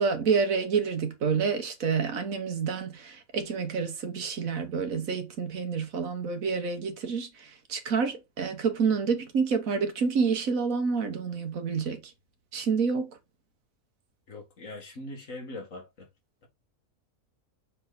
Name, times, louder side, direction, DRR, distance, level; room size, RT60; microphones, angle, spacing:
voice 1, 0.0-12.1 12.5-13.1, right 5 dB, 75° right, 1.6 m, -28 dB
voice 2, 14.3-16.1, left 2 dB, 70° left, 2.2 m, -41 dB
6.8 x 3.7 x 4.1 m
omnidirectional pair, 1.4 m